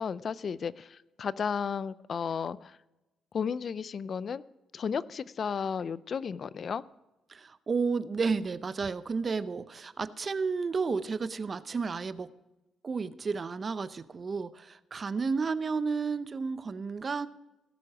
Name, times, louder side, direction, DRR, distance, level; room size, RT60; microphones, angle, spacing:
voice 1, 0.0-2.8 3.3-4.4 4.7-6.8, left 6 dB, 50° left, 19 dB, 0.4 m, -33 dB
voice 2, 7.3-12.3 12.8-17.3, right 4 dB, 35° right, 16 dB, 0.6 m, -32 dB
17.5 x 7.7 x 4.8 m, 1.0 s
cardioid pair, 90°, 0 cm